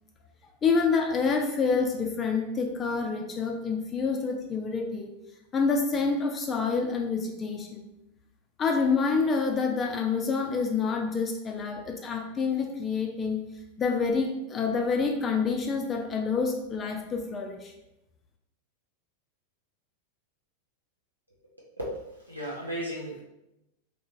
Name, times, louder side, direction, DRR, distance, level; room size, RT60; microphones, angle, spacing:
voice 1, 0.6-5.1 5.5-7.9 8.6-13.4 13.8-17.7, left 4 dB, 25° left, 3 dB, 0.3 m, -27 dB
voice 2, 22.3-23.2, equal, 85° right, -5 dB, 0.5 m, -34 dB
2.9 x 2.8 x 2.4 m, 0.90 s
figure-of-eight pair, 90°, 0 cm